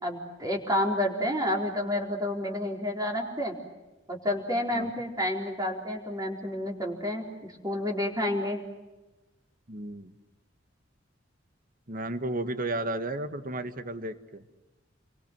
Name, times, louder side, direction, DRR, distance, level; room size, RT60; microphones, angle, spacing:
voice 1, 0.0-3.5 4.1-8.6, left 1 dB, 20° right, 0 dB, 4.2 m, -30 dB
voice 2, 9.7-10.1 11.9-14.4, right 2 dB, 50° right, 9 dB, 1.7 m, -33 dB
29.0 x 23.5 x 7.7 m, 1.1 s
head